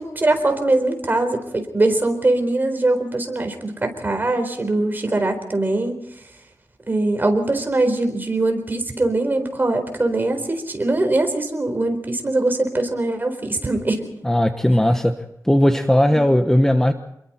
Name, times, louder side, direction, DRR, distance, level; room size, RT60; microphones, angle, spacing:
voice 1, 0.0-6.0 6.9-14.1 16.1-16.2, right 2 dB, 30° right, 5 dB, 4.3 m, -22 dB
voice 2, 14.2-15.2 15.4-16.9, left 1 dB, 5° left, 6 dB, 1.1 m, -17 dB
28.0 x 22.0 x 4.5 m, 0.80 s
wide cardioid pair, 120°, 7 cm